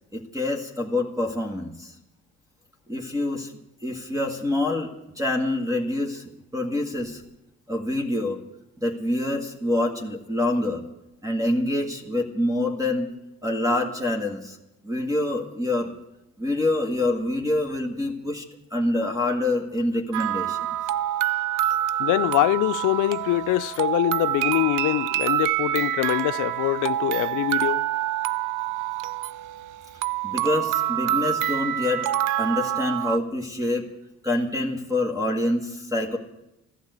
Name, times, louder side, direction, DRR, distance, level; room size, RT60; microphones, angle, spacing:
voice 1, 0.1-1.9 2.9-6.2 6.5-7.2 7.7-8.4 8.8-10.8 11.2-13.1 13.4-14.6 14.8-15.9 16.4-18.5 18.7-20.6 30.2-32.0 32.4-33.9 34.2-36.2, left 1 dB, 10° right, 1.9 m, -26 dB
sound 1, 20.1-33.2, right 12 dB, 90° right, 0.5 m, -26 dB
voice 2, 22.0-27.9, left 16 dB, 85° left, 0.5 m, -24 dB
15.0 x 11.5 x 8.1 m
cardioid pair, 90°, 30 cm